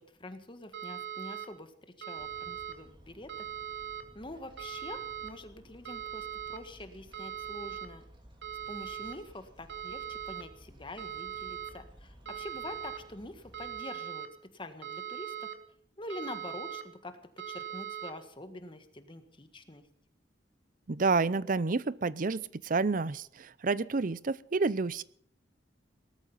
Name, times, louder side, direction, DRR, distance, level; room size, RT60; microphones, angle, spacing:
voice 1, 0.0-1.7 2.0-3.5 3.7-3.8 4.1-8.0 8.7-14.3 14.5-15.5 16.0-17.2 17.5-19.8, left 1 dB, 25° left, 8 dB, 1.6 m, -45 dB
sound 1, 0.7-1.5 2.0-2.7 3.3-4.0 4.6-5.3 5.9-6.6 7.1-7.9 8.4-9.2 9.7-10.4 11.0-11.7 12.3-13.0 13.5-14.3 14.8-15.6 16.1-16.8 17.4-18.1, right 9 dB, 75° right, 2.3 m, -40 dB
sound 2, 2.2-13.8, equal, 25° right, 2.8 m, -56 dB
voice 2, 20.9-25.0, right 4 dB, 45° right, 19 dB, 0.6 m, -29 dB
19.0 x 13.5 x 5.6 m, 0.62 s
head